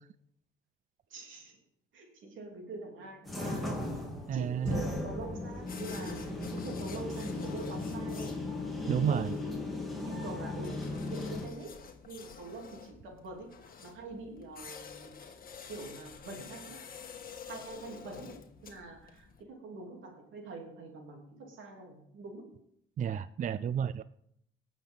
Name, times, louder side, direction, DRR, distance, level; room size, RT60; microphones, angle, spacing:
voice 1, 1.1-1.6 1.9-3.8 4.3-8.4 8.8-11.8 12.0-13.5 13.8-15.3 15.7-16.8 17.5-22.5, right 3 dB, 80° right, 1 dB, 3.2 m, -44 dB
sound 1, 3.3-11.5, left 2 dB, ahead, 3.0 m, -37 dB
voice 2, 4.3-4.8 8.9-9.3 23.0-24.0, right 8 dB, 40° right, 16 dB, 0.4 m, -30 dB
sound 2, 5.6-19.4, left 6 dB, 45° left, 1.5 m, -50 dB
18.5 x 7.3 x 3.8 m, 0.73 s
cardioid pair, 90°, 20 cm